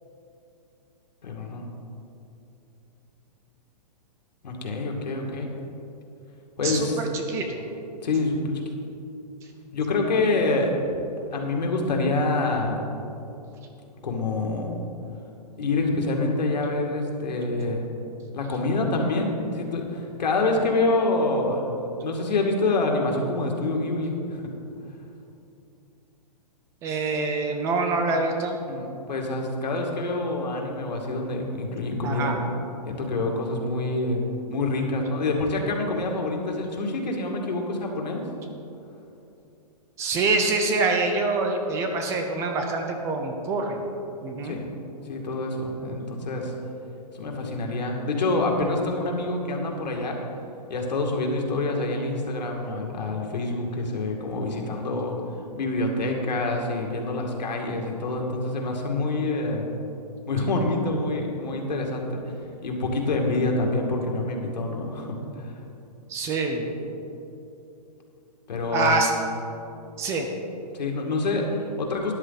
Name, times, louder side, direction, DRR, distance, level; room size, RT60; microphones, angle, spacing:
voice 1, 1.2-1.7 4.4-5.5 6.6-7.0 8.0-8.5 9.7-10.7 11.3-12.8 14.0-14.8 15.6-17.8 18.3-21.7 22.0-24.4 28.7-32.3 32.9-34.2 34.5-38.2 44.4-44.7 45.1-46.5 47.1-50.2 50.7-55.2 55.6-59.6 60.3-65.6 68.5-69.0 70.7-72.1, left 2 dB, 85° left, 1 dB, 2.4 m, -26 dB
voice 2, 6.6-7.6 26.8-28.6 32.0-32.3 40.0-43.8 44.2-44.6 66.1-66.7 68.7-69.1 70.0-70.3, right 3 dB, 15° right, 4 dB, 0.5 m, -25 dB
13.0 x 10.5 x 4.1 m, 2.8 s
hypercardioid pair, 160°, 21 cm